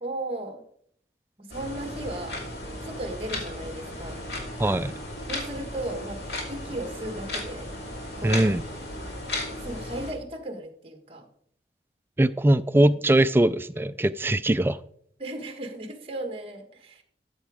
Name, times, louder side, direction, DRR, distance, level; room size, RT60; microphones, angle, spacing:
voice 1, 0.0-0.6 1.4-2.4 2.8-4.2 5.3-7.7 8.2-8.5 9.6-11.3 15.2-17.0, right 1 dB, 30° right, 1.5 m, -36 dB
sound 1, 1.5-10.1, left 1 dB, 70° left, 2.7 m, -35 dB
voice 2, 4.6-4.9 8.2-8.6 12.2-14.8, right 1 dB, 15° right, 0.3 m, -21 dB
13.0 x 7.0 x 4.9 m
head